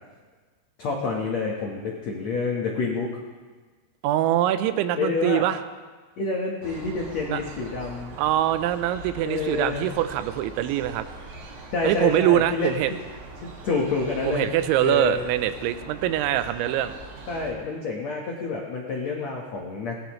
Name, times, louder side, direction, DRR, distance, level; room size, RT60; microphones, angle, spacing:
voice 1, 0.8-3.1 5.0-5.5 6.2-8.1 9.2-9.9 11.7-12.7 13.6-14.5 14.8-15.2 17.3-20.0, left 4 dB, 85° left, -1 dB, 1.5 m, -28 dB
voice 2, 4.0-5.6 7.3-7.4 8.2-11.1 11.8-12.9 14.3-17.0, right 12 dB, 80° right, 11 dB, 3.0 m, -23 dB
sound 1, 6.6-17.5, right 2 dB, 50° right, 2.9 m, -42 dB
20.0 x 17.0 x 3.2 m, 1.4 s
omnidirectional pair, 5.4 m